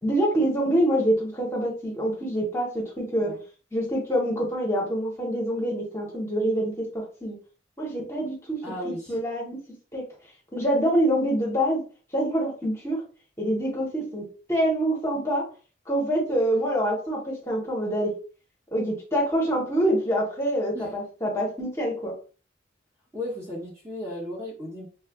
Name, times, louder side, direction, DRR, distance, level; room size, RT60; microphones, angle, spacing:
voice 1, 0.0-3.3 3.7-7.4 7.8-8.6 8.8-9.6 9.9-10.0 10.5-11.8 12.1-13.0 13.4-15.4 15.9-18.1 18.7-22.1, equal, 15° left, -3 dB, 0.9 m, -26 dB
voice 2, 8.6-9.1 20.7-20.9 23.1-24.9, left 1 dB, 15° right, -4 dB, 0.9 m, -35 dB
3.3 x 3.1 x 2.3 m, 0.38 s
head